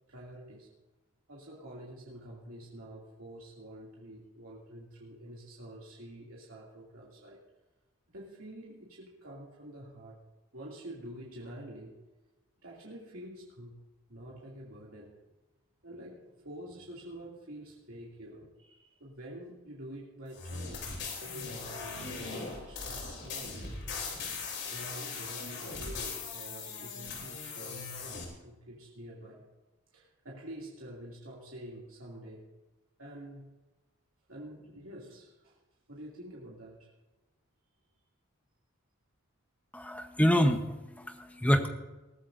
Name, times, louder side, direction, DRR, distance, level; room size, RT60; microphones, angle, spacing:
voice 1, 0.1-0.7 1.3-7.4 8.1-10.2 10.5-12.0 12.6-13.7 14.1-15.1 15.8-24.1 24.7-29.5 29.9-32.5 33.0-33.5 34.3-35.6 35.9-36.9, right 1 dB, 75° right, -5 dB, 2.7 m, -47 dB
sound 1, 20.3-28.2, left 4 dB, 55° left, 3.2 m, -39 dB
voice 2, 39.7-41.7, equal, 5° left, 6 dB, 1.0 m, -27 dB
21.0 x 14.0 x 2.7 m, 1.1 s
head